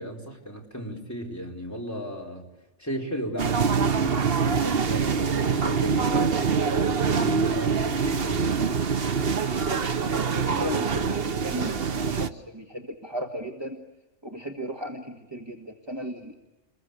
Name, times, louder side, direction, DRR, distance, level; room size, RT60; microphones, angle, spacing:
voice 1, 0.0-2.5 2.8-6.5 7.1-8.9, equal, 15° left, 0 dB, 4.5 m, -35 dB
sound 1, 3.4-12.3, right 5 dB, 55° right, 1.3 m, -25 dB
voice 2, 5.9-6.3 10.0-13.8 14.2-16.4, equal, 20° right, 2 dB, 1.8 m, -36 dB
29.5 x 21.5 x 8.3 m, 1.1 s
omnidirectional pair, 1.2 m